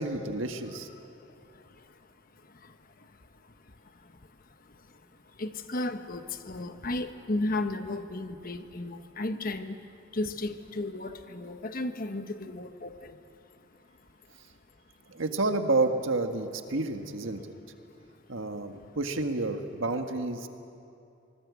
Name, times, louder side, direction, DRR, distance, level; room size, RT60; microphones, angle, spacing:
voice 1, 0.0-0.9 15.1-17.5 18.3-20.5, right 2 dB, 85° right, 6 dB, 1.6 m, -30 dB
voice 2, 1.0-14.5 15.1-15.2 17.8-18.7, left 2 dB, 45° left, 8 dB, 1.2 m, -37 dB
25.0 x 20.0 x 8.3 m, 2.7 s
head